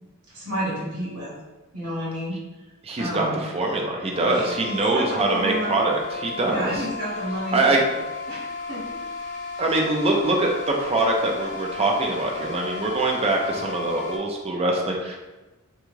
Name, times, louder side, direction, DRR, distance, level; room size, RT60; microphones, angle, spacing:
voice 1, 0.3-1.3 1.7-2.4 3.0-3.4 4.3-4.5 4.9-5.7 6.5-8.0 8.3-9.0, equal, 70° right, -6 dB, 1.0 m, -30 dB
voice 2, 2.8-6.8 7.5-7.8 9.6-15.2, right 2 dB, 25° right, 0 dB, 0.4 m, -23 dB
sound 1, 4.1-14.2, left 4 dB, 65° left, 0.8 m, -34 dB
2.6 x 2.3 x 3.1 m, 1.1 s
head